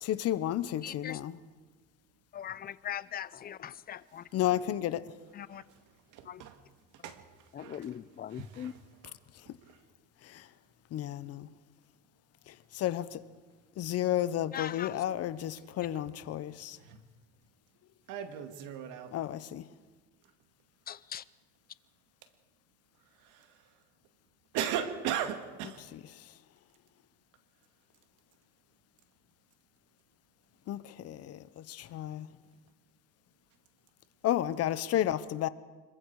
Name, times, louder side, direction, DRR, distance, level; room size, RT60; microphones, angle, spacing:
voice 1, 0.0-1.4 4.3-5.1 9.3-9.5 10.2-10.5 10.9-11.5 12.5-13.2 13.8-16.8 19.1-19.7 25.8-26.3 30.7-32.3 34.2-35.5, left 12 dB, 50° left, 1.0 m, -32 dB
voice 2, 0.8-1.2 2.3-4.3 5.3-5.6 6.2-6.4 7.0-7.1 7.5-8.7 14.5-15.0 20.9-21.2, left 9 dB, 30° left, 0.6 m, -40 dB
voice 3, 6.1-6.5 7.0-7.2 7.6-7.8 8.4-8.7 16.9-17.0 18.1-19.1 23.3-23.4 24.5-25.8, right 9 dB, 70° right, 2.2 m, -36 dB
26.0 x 22.5 x 4.9 m
cardioid pair, 120°, 32 cm